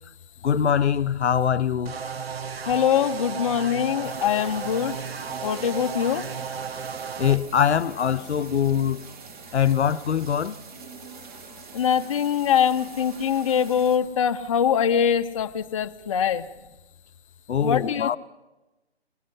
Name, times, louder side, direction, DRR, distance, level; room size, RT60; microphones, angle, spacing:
voice 1, 0.4-2.0 7.2-9.0 9.5-10.6 17.5-18.2, left 8 dB, 80° left, 0.8 m, -23 dB
sound 1, 1.9-7.4, right 6 dB, 65° right, 1.4 m, -34 dB
voice 2, 2.6-5.0 5.4-6.3 11.7-16.5 17.6-18.2, left 8 dB, 30° left, 0.7 m, -23 dB
sound 2, 4.0-14.0, right 5 dB, 45° right, 4.9 m, -44 dB
23.0 x 21.5 x 5.6 m
hypercardioid pair, 155°, 33 cm